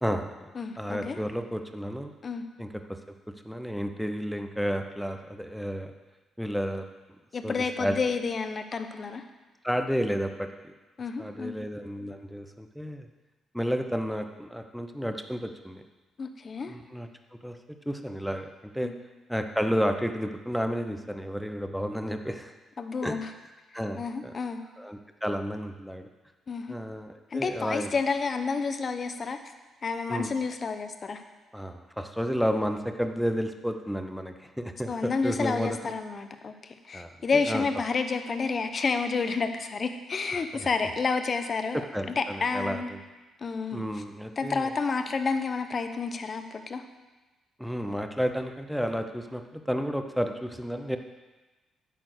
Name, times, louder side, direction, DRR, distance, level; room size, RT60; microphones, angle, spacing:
voice 1, 0.0-0.5 0.8-2.1 2.6-3.0 3.4-5.9 6.4-6.8 7.4-7.9 9.6-10.7 11.2-13.1 13.5-15.8 16.7-17.1 17.4-17.6 17.9-18.9 19.3-22.5 23.0-23.2 23.7-24.3 24.8-26.1 26.7-27.9 30.1-30.3 31.5-35.9 36.9-37.6 40.5-40.7 41.7-42.8 43.7-44.7 47.6-51.0, equal, ahead, 6 dB, 0.9 m, -31 dB
voice 2, 0.5-1.2 2.2-2.4 7.3-9.2 11.0-11.6 16.2-16.8 18.8-18.9 22.8-23.3 23.9-24.6 26.5-26.8 27.3-29.4 29.8-31.2 34.9-41.8 42.1-42.9 43.4-43.8 44.4-46.8, left 4 dB, 40° left, 8 dB, 0.9 m, -30 dB
11.0 x 4.4 x 8.0 m, 1.2 s
cardioid pair, 90°, 0 cm